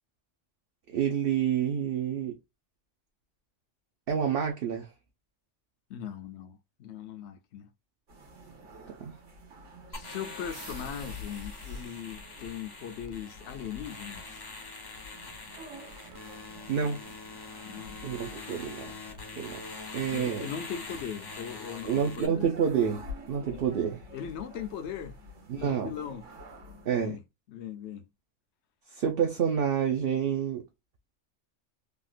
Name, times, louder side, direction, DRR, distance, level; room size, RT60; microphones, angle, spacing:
voice 1, 0.9-2.4 4.1-4.9 9.0-9.1 16.7-17.0 18.0-18.9 19.4-19.6 19.9-20.4 21.8-23.0 23.3-24.0 25.5-25.9 26.9-27.2 28.9-30.6, right 8 dB, 55° right, 0.8 m, -28 dB
voice 2, 5.9-7.7 9.9-14.4 17.6-18.0 20.1-22.5 24.1-25.1 25.6-26.3 26.9-27.2 27.5-28.1, left 8 dB, 70° left, 0.9 m, -39 dB
sound 1, 8.1-27.1, left 1 dB, 80° right, 1.7 m, -48 dB
sound 2, 9.9-22.3, left 3 dB, 25° left, 0.5 m, -44 dB
3.6 x 2.4 x 2.4 m
omnidirectional pair, 1.3 m